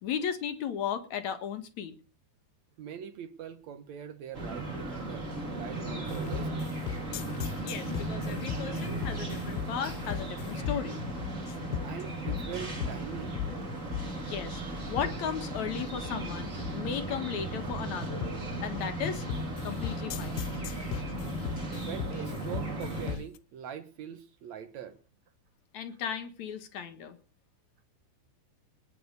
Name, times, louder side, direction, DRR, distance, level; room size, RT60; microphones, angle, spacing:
voice 1, 0.0-2.0 7.6-11.0 14.3-18.3 18.6-19.3 19.6-20.4 25.7-27.2, left 8 dB, 55° left, 2.3 m, -36 dB
voice 2, 2.8-7.1 11.8-13.4 21.9-25.0, right 8 dB, 70° right, 1.7 m, -43 dB
sound 1, 4.3-23.1, right 2 dB, 20° right, 3.8 m, -36 dB
sound 2, 6.1-23.4, left 11 dB, 80° left, 3.0 m, -38 dB
20.0 x 7.7 x 6.8 m
omnidirectional pair, 4.9 m